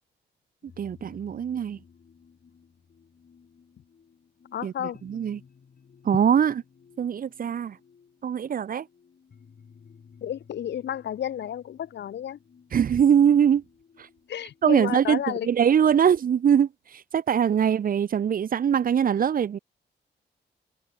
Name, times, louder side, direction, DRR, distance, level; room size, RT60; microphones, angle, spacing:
sound 1, 0.7-16.2, left 6 dB, 55° left, 4.0 m, -56 dB
voice 1, 0.8-1.8 4.6-4.7 5.0-5.4 6.1-6.6 7.0-7.8 8.2-8.8 12.7-13.6 14.6-15.2 15.5-16.7 17.1-19.6, right 8 dB, 50° right, 0.5 m, -22 dB
voice 2, 4.5-5.0 10.2-12.4 14.3-15.5, left 10 dB, 70° left, 0.7 m, -32 dB
cardioid pair, 95°, 19 cm